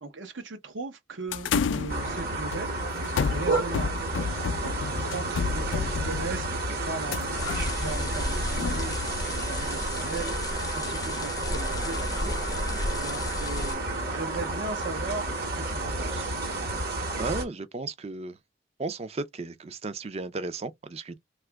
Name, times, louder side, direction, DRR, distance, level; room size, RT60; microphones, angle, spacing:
voice 1, 0.0-2.7 3.3-3.9 4.6-16.3, right 3 dB, 75° right, 0.7 m, -38 dB
sound 1, 1.3-9.7, left 6 dB, 75° left, 0.3 m, -32 dB
sound 2, 1.9-17.4, right 2 dB, 50° right, 1.0 m, -31 dB
sound 3, 7.4-13.7, left 2 dB, 20° left, 0.5 m, -34 dB
voice 2, 17.2-18.4 18.8-21.2, right 3 dB, 35° right, 0.4 m, -34 dB
2.9 x 2.3 x 3.3 m
head